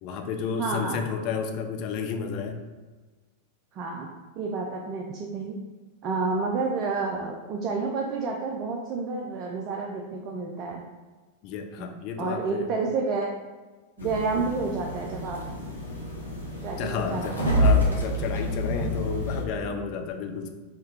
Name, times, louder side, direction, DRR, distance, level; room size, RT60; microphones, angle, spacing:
voice 1, 0.0-2.6 11.4-12.7 14.0-14.4 16.8-20.5, left 6 dB, 45° left, 5 dB, 0.4 m, -32 dB
voice 2, 0.6-1.0 3.7-4.1 4.4-5.5 6.0-10.8 11.8-13.3 14.0-15.4 16.6-17.7, right 4 dB, 35° right, 0 dB, 0.4 m, -30 dB
sound 1, 14.0-19.4, equal, 85° left, 0.9 m, -27 dB
4.2 x 2.4 x 3.2 m, 1.3 s
figure-of-eight pair, 90°, 0 cm